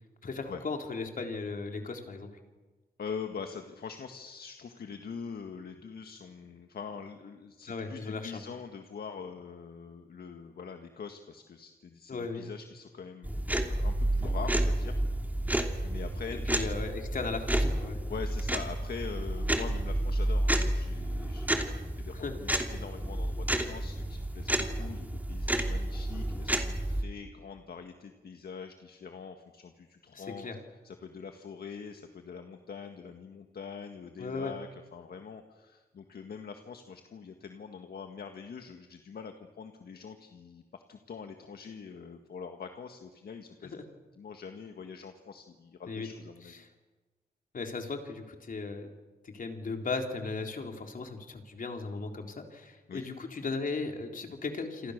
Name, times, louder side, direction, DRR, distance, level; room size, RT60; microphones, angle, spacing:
voice 1, 0.2-2.3 7.7-8.4 12.1-12.4 16.3-18.0 22.2-22.4 30.1-30.6 34.2-34.5 43.6-43.8 45.9-46.1 47.5-48.9 49.2-54.9, left 4 dB, 55° left, 4 dB, 3.8 m, -36 dB
voice 2, 3.0-15.0 15.8-16.6 18.1-30.5 30.8-43.7 44.2-46.6 52.9-53.0, left 6 dB, 70° left, 6 dB, 1.8 m, -44 dB
sound 1, 13.2-27.0, right 1 dB, 10° right, 2.8 m, -30 dB
28.5 x 26.0 x 6.7 m, 1.2 s
wide cardioid pair, 90°, 17 cm